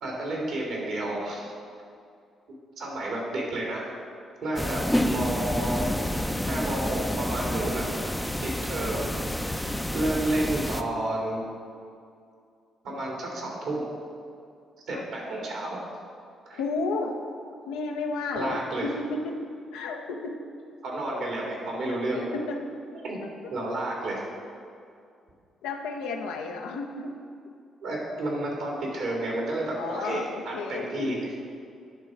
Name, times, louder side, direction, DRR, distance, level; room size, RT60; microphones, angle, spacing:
voice 1, 0.0-1.5 2.8-4.0 4.4-5.9 6.5-7.9 8.4-9.1 9.5-9.6 9.9-11.4 12.8-13.9 14.9-15.9 16.5-16.6 18.3-18.9 20.8-22.3 22.9-23.2 23.5-24.2 27.8-31.2, right 1 dB, 70° right, -2 dB, 2.2 m, -31 dB
sound 1, 4.6-10.8, left 1 dB, 5° left, 0.6 m, -29 dB
voice 2, 16.5-17.2 17.7-19.4 19.7-20.4 22.1-22.6 23.2-23.3 25.6-27.1 29.8-31.2, left 3 dB, 75° left, 3 dB, 0.7 m, -32 dB
9.7 x 3.9 x 6.0 m, 2.4 s
hypercardioid pair, 45°, 0 cm